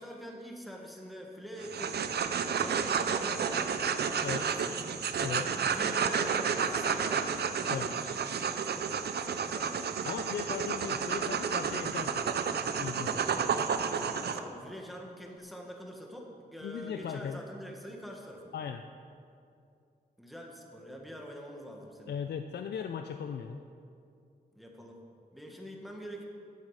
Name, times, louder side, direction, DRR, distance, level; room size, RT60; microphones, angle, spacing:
voice 1, 0.0-1.9 2.6-5.2 5.6-7.6 9.5-9.8 14.2-18.5 20.2-22.2 24.5-25.0 25.3-26.2, equal, ahead, 0 dB, 1.6 m, -45 dB
sound 1, 1.6-14.4, right 6 dB, 75° right, 0.6 m, -31 dB
voice 2, 10.0-12.3 12.8-13.2 16.6-17.4 18.5-18.8 22.1-23.6, left 7 dB, 85° left, 7 dB, 0.5 m, -37 dB
15.0 x 8.5 x 4.9 m, 2.5 s
wide cardioid pair, 105°, 17 cm